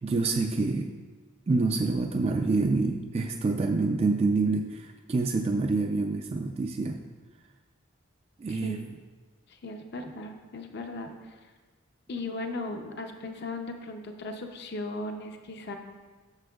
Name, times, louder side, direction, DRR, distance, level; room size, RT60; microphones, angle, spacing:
voice 1, 0.0-0.9 1.5-7.0 8.4-8.9, right 3 dB, 30° right, 3 dB, 0.3 m, -27 dB
voice 2, 8.5-8.9 9.5-11.5 12.1-15.8, left 2 dB, 55° left, 5 dB, 0.5 m, -37 dB
9.6 x 7.0 x 2.3 m, 1.4 s
head